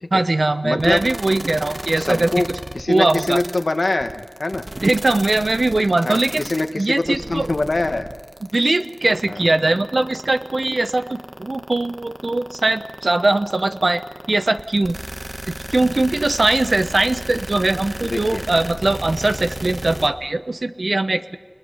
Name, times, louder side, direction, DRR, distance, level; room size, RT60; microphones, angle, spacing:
voice 1, 0.1-2.3 2.9-3.4 4.7-6.4 6.7-7.5 8.5-14.0 14.3-15.0 15.5-21.4, right 2 dB, 75° right, 11 dB, 0.9 m, -20 dB
voice 2, 0.6-1.0 2.0-2.5 2.7-4.6 6.0-8.1 9.3-9.4 18.0-18.4, left 2 dB, 85° left, 7 dB, 1.4 m, -23 dB
sound 1, 0.8-20.1, right 1 dB, 35° right, 1.4 m, -33 dB
30.0 x 21.0 x 5.6 m, 1.4 s
wide cardioid pair, 50°, 0 cm